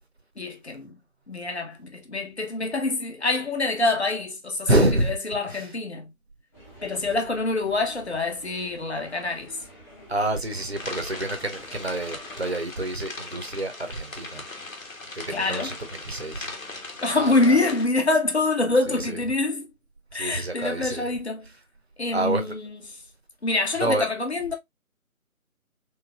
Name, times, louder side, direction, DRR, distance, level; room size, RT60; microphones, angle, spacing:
voice 1, 0.4-0.9 1.3-6.1 6.8-9.6 15.3-15.7 17.0-19.7 20.1-21.5 22.0-23.0 23.4-24.5, left 2 dB, 50° left, 0.9 m, -26 dB
voice 2, 4.7-5.1 5.5-5.7 10.1-14.4 15.1-15.7 16.0-16.5 17.1-17.6 18.9-19.2 20.1-21.1 22.1-22.4 23.8-24.1, right 1 dB, 50° right, 0.7 m, -27 dB
sound 1, 6.5-12.6, equal, 15° left, 1.1 m, -48 dB
sound 2, 10.7-17.9, left 3 dB, 70° left, 1.1 m, -39 dB
3.4 x 3.2 x 2.2 m
figure-of-eight pair, 160°, 43 cm